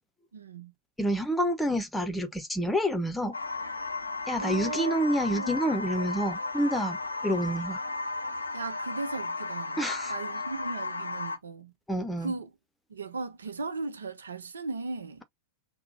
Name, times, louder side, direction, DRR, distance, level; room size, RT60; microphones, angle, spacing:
voice 1, 0.3-0.7 4.4-5.6 8.5-9.8 10.1-11.7 12.2-12.5 12.9-15.2, right 3 dB, 70° right, 0.8 m, -37 dB
voice 2, 1.0-3.4 4.3-7.8 9.8-10.1 11.9-12.3, equal, 5° left, 0.9 m, -28 dB
sound 1, 3.3-11.4, left 3 dB, 80° left, 0.6 m, -34 dB
5.9 x 2.3 x 2.6 m
figure-of-eight pair, 90°, 0 cm